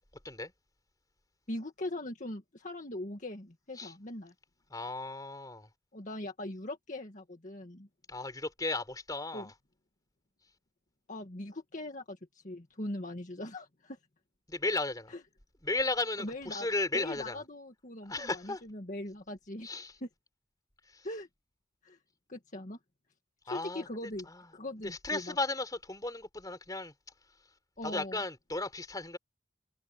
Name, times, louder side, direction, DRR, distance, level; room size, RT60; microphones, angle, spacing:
voice 1, 1.5-4.3 5.9-7.9 9.3-9.5 11.1-14.0 15.1-15.2 16.2-16.7 16.9-19.7 20.0-20.1 21.0-21.3 21.8-22.0 22.3-22.8 23.4-25.4 27.8-28.2, left 1 dB, 45° left, 1.9 m, -41 dB
voice 2, 4.7-5.7 8.1-9.5 14.5-15.1 15.6-17.4 18.1-18.6 19.6-19.9 20.9-21.0 23.5-23.9 24.3-24.4 24.8-26.9 27.8-29.2, left 2 dB, 20° left, 4.1 m, -35 dB
head